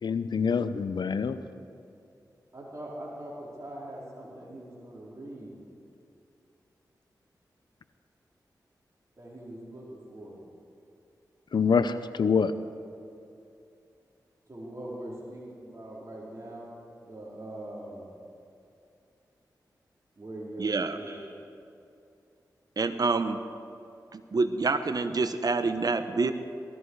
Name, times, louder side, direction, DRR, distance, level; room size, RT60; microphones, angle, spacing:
voice 1, 0.0-1.4 11.5-12.5, left 5 dB, 75° left, 12 dB, 0.7 m, -25 dB
voice 2, 2.5-5.6 9.2-10.4 14.5-16.7 17.0-18.1 20.2-21.3, right 1 dB, 40° right, -6 dB, 4.4 m, -42 dB
voice 3, 20.6-21.0 22.8-23.4 24.1-26.3, right 3 dB, 60° right, 10 dB, 1.0 m, -27 dB
18.5 x 14.0 x 4.8 m, 2.6 s
cardioid pair, 40°, 8 cm